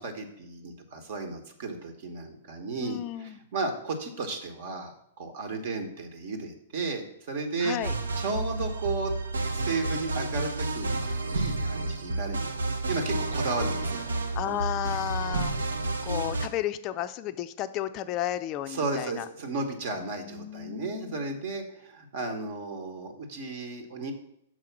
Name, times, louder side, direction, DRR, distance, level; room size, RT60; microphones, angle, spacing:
voice 1, 0.0-7.8 8.2-9.1 9.5-14.1 14.4-14.6 18.7-24.1, right 3 dB, 50° right, 6 dB, 1.1 m, -34 dB
voice 2, 2.8-3.4 7.6-7.9 14.4-15.5 16.0-19.3 20.0-21.3, left 13 dB, 35° left, 10 dB, 0.4 m, -33 dB
sound 1, 7.8-16.5, right 2 dB, 70° right, 0.6 m, -30 dB
6.2 x 4.7 x 5.8 m, 0.74 s
figure-of-eight pair, 105°, 0 cm